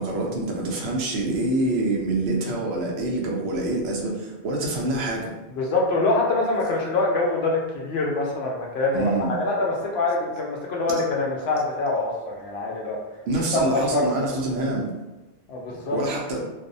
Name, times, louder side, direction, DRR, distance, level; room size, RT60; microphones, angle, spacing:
voice 1, 0.0-5.3 8.9-9.3 13.3-14.9 15.9-16.4, right 2 dB, 75° right, -2 dB, 0.8 m, -26 dB
voice 2, 5.6-13.0 13.5-14.3 14.5-14.7 15.5-16.0, left 2 dB, 70° left, -1 dB, 0.8 m, -25 dB
2.5 x 2.0 x 2.5 m, 1.1 s
omnidirectional pair, 1.1 m